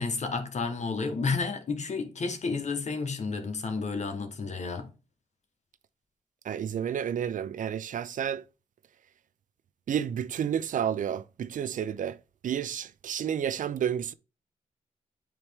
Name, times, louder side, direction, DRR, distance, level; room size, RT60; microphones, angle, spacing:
voice 1, 0.0-4.9, left 4 dB, 60° left, 1.3 m, -31 dB
voice 2, 6.4-8.4 9.9-12.2 12.4-14.1, right 9 dB, 70° right, 0.5 m, -30 dB
8.9 x 3.2 x 3.6 m
cardioid pair, 60°, 14 cm